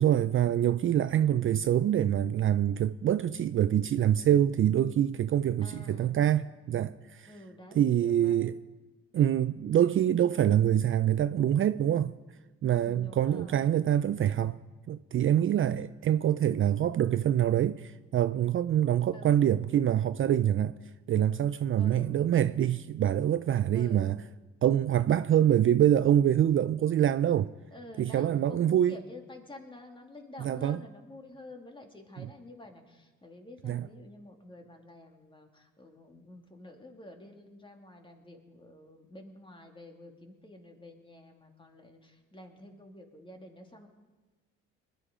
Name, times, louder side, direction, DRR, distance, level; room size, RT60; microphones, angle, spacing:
voice 1, 0.0-7.3 7.8-8.5 9.1-12.1 12.6-14.6 14.9-20.8 21.1-24.2 24.6-27.5 28.0-28.9 30.4-30.8 32.2-32.3 33.6-33.9, right 10 dB, 45° right, 0.4 m, -25 dB
voice 2, 5.6-6.3 7.3-8.4 12.7-13.7 19.1-19.5 21.8-22.2 23.7-24.3 27.7-43.9, left 1 dB, 15° left, 2.4 m, -49 dB
20.5 x 11.0 x 5.0 m
cardioid pair, 75°, 29 cm